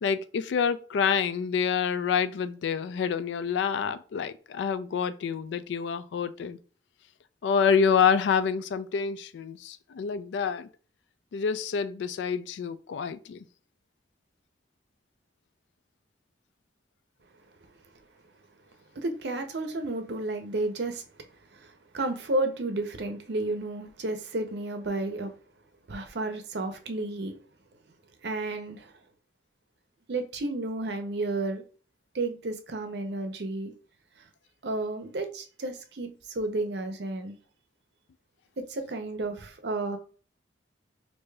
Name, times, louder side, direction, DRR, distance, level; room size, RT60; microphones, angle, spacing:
voice 1, 0.0-6.6 7.4-10.7 11.3-13.4, left 6 dB, 70° left, 0.3 m, -27 dB
voice 2, 19.0-21.0 21.5-25.3 25.9-27.3 28.2-28.9 30.1-31.6 32.1-33.7 34.6-37.4 38.7-40.0, right 2 dB, 60° right, 0.6 m, -32 dB
4.7 x 2.6 x 2.2 m
head